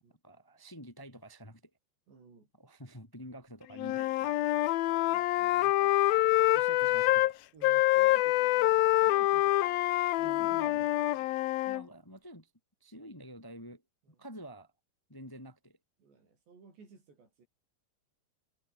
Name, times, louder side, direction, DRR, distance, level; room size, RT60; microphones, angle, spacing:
voice 1, 0.2-1.6 2.6-4.8 6.5-7.4 10.2-10.9 11.6-12.5 12.8-13.8 14.2-14.7 15.1-15.8, equal, 5° left, 2.4 m, -48 dB
voice 2, 2.1-2.5 4.8-6.0 6.8-7.1 7.5-9.9 10.2-11.4 14.1-14.3 16.0-17.5, right 4 dB, 80° right, 9.8 m, -56 dB
Wind instrument woodwind instrument, 3.8-7.3 7.6-11.8, left 16 dB, 75° left, 2.5 m, -26 dB
omnidirectional pair, 4.9 m